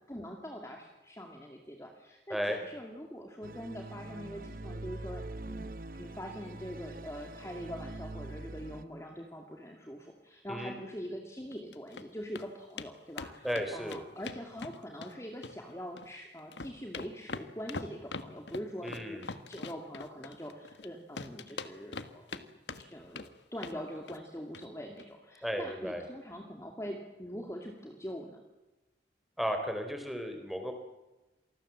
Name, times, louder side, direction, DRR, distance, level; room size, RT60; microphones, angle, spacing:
voice 1, 0.1-22.5 22.8-28.4, equal, 15° left, 2 dB, 2.3 m, -43 dB
sound 1, 3.4-8.8, right 2 dB, 50° right, 0.9 m, -43 dB
sound 2, 11.5-12.0 12.3-12.5 12.8-12.9 13.2-15.1 15.4-16.1 16.4-20.9 21.2-22.4 22.7-23.3 23.6-23.8 24.1-24.3 24.5-24.7 25.0-25.1, left 3 dB, 85° left, 1.5 m, -42 dB
voice 2, 13.4-14.0 18.8-19.2 25.4-26.0 29.4-30.7, equal, ahead, 5 dB, 3.6 m, -34 dB
27.5 x 20.0 x 7.5 m, 1.0 s
head